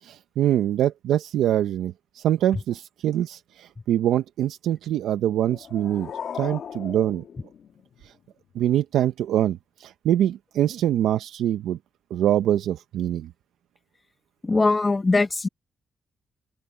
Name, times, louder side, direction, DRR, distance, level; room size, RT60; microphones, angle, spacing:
voice 1, 0.0-7.2 8.0-8.1 8.5-11.8 12.1-13.3, right 11 dB, 90° right, 0.7 m, -24 dB
sound 1, 5.3-8.3, left 8 dB, 70° left, 1.9 m, -38 dB
voice 2, 14.4-15.5, left 3 dB, 30° left, 1.3 m, -21 dB
open air
cardioid pair, 65°, 0 cm